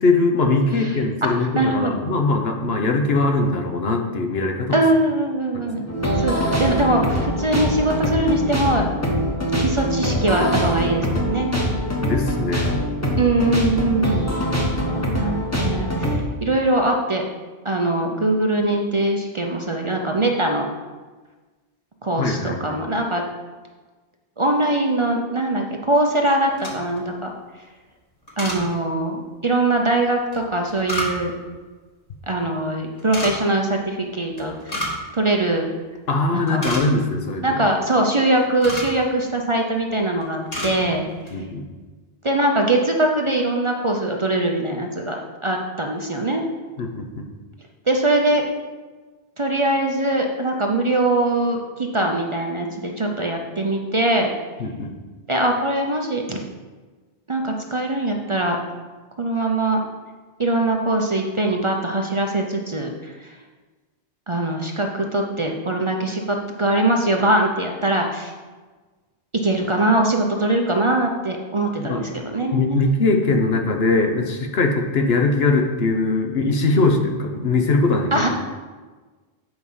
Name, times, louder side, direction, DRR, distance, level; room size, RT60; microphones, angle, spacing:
voice 1, 0.0-4.8 5.5-5.7 12.0-12.8 22.2-22.6 36.1-37.7 41.3-41.6 46.8-47.3 54.6-54.9 71.8-72.0 72.5-78.3, left 3 dB, 70° left, 3 dB, 1.2 m, -21 dB
voice 2, 0.8-1.9 4.7-5.8 6.2-8.9 9.6-11.5 13.2-14.4 14.8-17.2 17.6-20.7 22.0-23.2 24.4-27.3 28.4-31.3 32.3-34.9 35.1-35.7 36.3-36.6 37.4-41.0 42.2-46.5 47.9-48.4 49.4-54.3 55.3-56.4 57.3-58.6 59.2-59.8 60.4-63.3 64.3-68.3 69.4-72.8 78.1-78.3, right 1 dB, 35° right, 2 dB, 0.6 m, -22 dB
sound 1, 5.9-16.2, equal, 15° left, 1.1 m, -23 dB
sound 2, 26.4-27.0 28.3-28.6 30.3-31.5 33.0-33.3 34.4-35.1 35.3-35.4 36.0-36.1 36.4-37.2 38.1-39.0 39.7-40.0 40.2-40.8 41.1-41.3, left 1 dB, 35° left, 1.6 m, -30 dB
7.9 x 4.8 x 5.5 m, 1.3 s
omnidirectional pair, 1.1 m